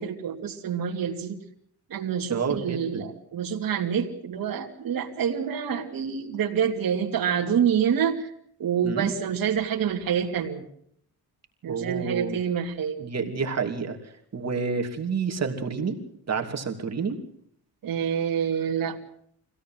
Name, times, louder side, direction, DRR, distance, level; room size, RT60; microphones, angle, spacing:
voice 1, 0.0-1.4 1.9-8.3 8.6-10.6 11.6-13.0 17.8-19.0, right 8 dB, 65° right, 1 dB, 2.7 m, -27 dB
voice 2, 2.3-3.0 8.8-9.1 11.6-12.4 13.0-14.0 14.3-16.0 16.3-17.2, right 5 dB, 40° right, 4 dB, 3.0 m, -29 dB
25.0 x 17.0 x 7.7 m, 0.67 s
cardioid pair, 105°, 38 cm